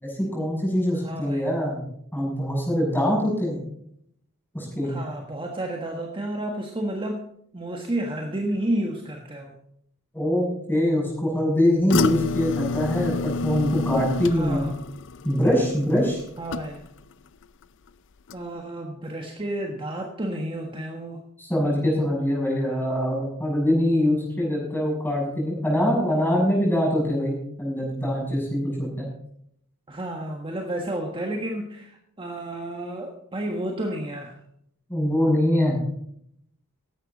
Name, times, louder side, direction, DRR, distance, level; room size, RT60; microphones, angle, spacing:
voice 1, 0.0-1.8 2.1-3.6 4.5-4.9 10.1-14.6 15.2-16.2 21.4-29.1 34.9-35.8, left 1 dB, 10° left, -3 dB, 6.9 m, -23 dB
voice 2, 0.9-1.5 4.8-9.6 14.3-14.8 16.4-16.9 18.3-21.2 29.9-34.4, right 1 dB, 25° right, 2 dB, 1.4 m, -31 dB
sound 1, 11.9-17.1 17.4-17.9 18.3-18.4, left 4 dB, 60° left, 0.6 m, -30 dB
15.5 x 11.5 x 4.1 m, 0.71 s
head